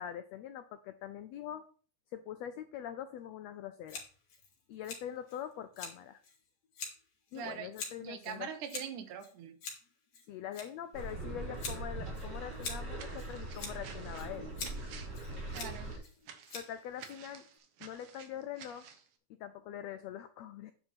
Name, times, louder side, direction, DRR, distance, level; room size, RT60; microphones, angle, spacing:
voice 1, 0.0-1.6 2.1-4.0 4.7-6.2 7.3-8.5 10.3-14.5 16.5-17.4 17.8-18.8 19.4-20.7, left 10 dB, 90° left, 10 dB, 1.5 m, -43 dB
Scissors, 3.9-17.6, left 4 dB, 60° left, 3.3 m, -47 dB
voice 2, 7.3-7.7 8.0-9.6 15.5-15.9, right 8 dB, 85° right, 8 dB, 2.5 m, -42 dB
sound 1, 10.9-16.0, right 2 dB, 45° right, 4.0 m, -41 dB
sound 2, 12.9-19.1, right 7 dB, 65° right, 2.2 m, -52 dB
9.6 x 4.7 x 5.7 m, 0.43 s
omnidirectional pair, 3.6 m